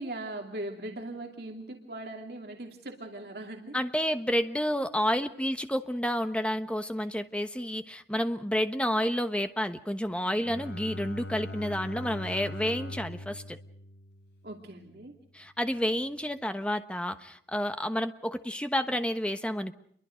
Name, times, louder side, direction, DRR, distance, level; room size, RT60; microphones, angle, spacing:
voice 1, 0.0-3.8 14.4-15.1, right 1 dB, 55° right, 2 dB, 2.6 m, -39 dB
voice 2, 3.7-13.6 15.3-19.7, equal, 5° left, 8 dB, 1.2 m, -30 dB
Bowed string instrument, 10.3-14.9, left 1 dB, 65° left, 4.2 m, -41 dB
29.0 x 23.0 x 5.2 m, 0.68 s
head